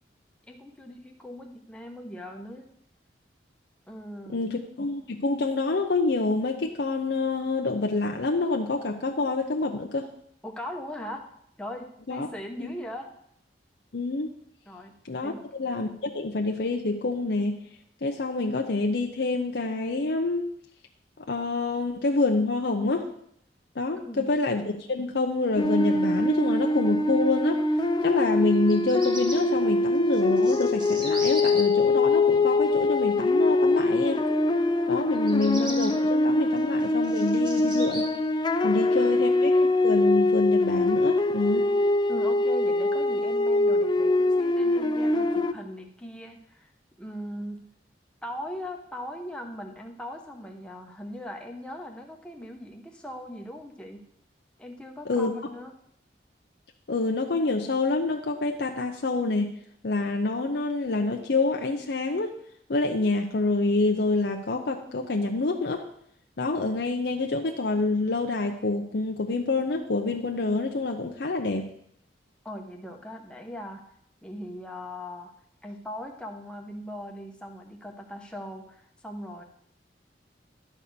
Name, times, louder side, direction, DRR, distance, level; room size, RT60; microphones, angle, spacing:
voice 1, 0.5-2.7 3.9-4.6 10.4-11.3 11.6-13.1 14.7-14.9 15.2-15.5 24.1-24.3 38.6-39.2 42.1-46.7 47.0-47.7 48.2-54.0 54.6-55.7 72.4-73.8 74.2-75.3 75.6-79.4, left 1 dB, 5° left, 2 dB, 1.0 m, -39 dB
voice 2, 4.3-10.1 12.1-12.3 12.6-12.7 13.9-14.3 15.0-15.3 15.6-17.6 18.0-20.5 21.3-23.1 23.8-27.6 28.0-34.2 34.9-38.1 38.6-41.7 55.1-55.3 56.9-59.5 59.8-62.4 62.7-65.8 66.4-71.7, left 3 dB, 65° left, 2 dB, 0.7 m, -27 dB
sound 1, 25.6-45.5, left 2 dB, 25° left, 0.4 m, -23 dB
Bird vocalization bird call bird song, 28.5-29.4 30.1-31.6 35.1-35.9 36.6-38.0, equal, 25° right, 1.8 m, -37 dB
11.5 x 4.3 x 6.8 m, 0.71 s
head